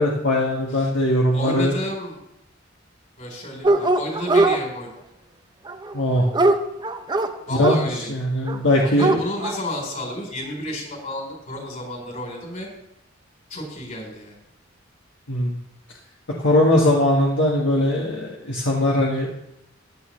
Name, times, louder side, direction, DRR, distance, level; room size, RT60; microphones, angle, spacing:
voice 1, 0.0-1.7 5.9-6.3 7.5-9.2 15.3-15.6 16.4-19.3, left 1 dB, 65° left, -2 dB, 1.4 m, -20 dB
voice 2, 1.3-2.2 3.2-4.9 7.5-8.1 9.0-12.7 13.5-14.4, left 1 dB, 40° left, 0 dB, 3.8 m, -31 dB
Dog, 3.6-4.6 5.7-7.8 8.5-8.6 8.8-9.6, right 2 dB, 20° right, 0.6 m, -20 dB
15.0 x 9.6 x 3.2 m, 0.85 s
head